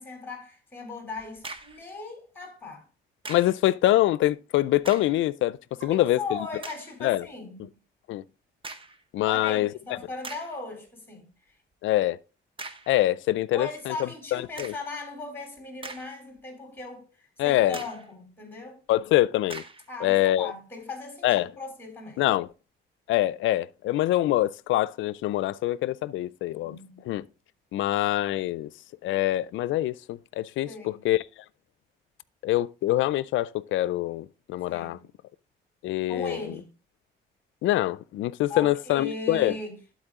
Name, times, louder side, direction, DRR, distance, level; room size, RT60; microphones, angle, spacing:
voice 1, 0.0-2.9 5.8-7.7 9.3-11.3 13.5-18.8 19.9-22.2 26.6-27.1 30.6-31.0 34.7-35.0 36.1-36.7 38.5-39.9, left 3 dB, 10° left, 3.1 m, -38 dB
sound 1, 1.2-1.9 3.3-3.6 4.8-5.2 5.8-5.9 6.6-6.9 8.6-9.0 9.7-9.8 10.2-10.6 12.6-13.0 14.6-14.9 15.6-16.4 16.8-16.9 17.7-18.1 19.5-19.9, right 3 dB, 25° right, 1.0 m, -41 dB
voice 2, 3.3-6.4 7.0-7.2 8.1-8.2 9.1-9.7 11.8-12.2 12.9-14.7 17.4-17.8 18.9-19.6 20.0-20.5 21.2-21.5 22.2-22.5 23.1-26.8 27.1-27.3 27.7-28.7 29.0-31.2 32.4-35.0 35.8-36.5 37.6-39.6, left 15 dB, 75° left, 0.4 m, -25 dB
11.5 x 4.3 x 3.6 m
cardioid pair, 90°, 20 cm